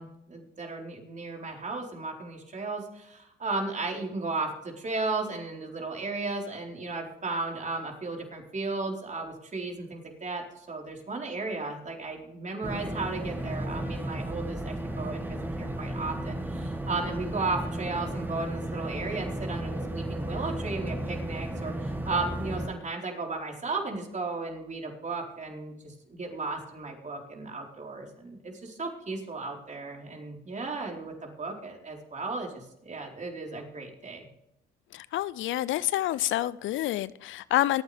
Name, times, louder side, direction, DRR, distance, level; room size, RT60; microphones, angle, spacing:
voice 1, 0.0-34.3, right 3 dB, 35° right, 4.4 m, -35 dB
sound 1, 12.6-22.7, right 1 dB, 10° right, 2.1 m, -34 dB
voice 2, 34.9-37.8, left 14 dB, 65° left, 0.5 m, -28 dB
25.0 x 9.2 x 3.5 m
supercardioid pair, 65°, 21 cm